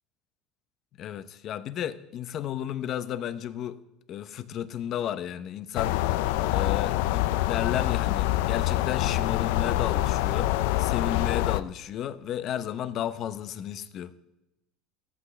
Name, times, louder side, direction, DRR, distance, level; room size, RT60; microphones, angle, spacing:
voice 1, 1.0-3.8 4.1-6.0 6.5-14.2, left 10 dB, 45° left, 0.7 m, -33 dB
sound 1, 5.8-11.6, left 15 dB, 80° left, 0.4 m, -25 dB
14.0 x 14.0 x 3.3 m
supercardioid pair, 125°, 0 cm